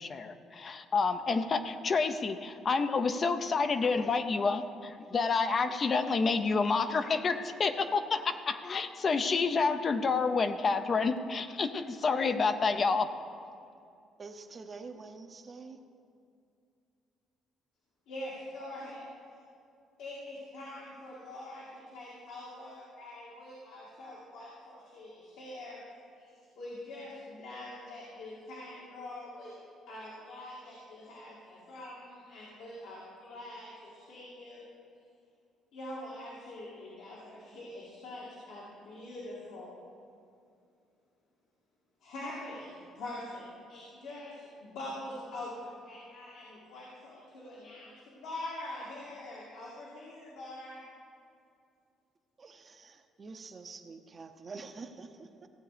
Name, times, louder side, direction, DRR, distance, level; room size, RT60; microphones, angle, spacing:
voice 1, 0.0-13.1, left 4 dB, 35° left, 9 dB, 0.5 m, -29 dB
voice 2, 14.2-15.8 52.4-55.5, right 4 dB, 30° right, 6 dB, 0.7 m, -47 dB
voice 3, 18.1-19.1 20.0-25.8 26.1-29.6 29.9-34.6 35.7-39.7 42.0-50.8, left 1 dB, 80° left, -6 dB, 2.3 m, -44 dB
16.0 x 8.0 x 5.0 m, 2.5 s
cardioid pair, 135°, 0 cm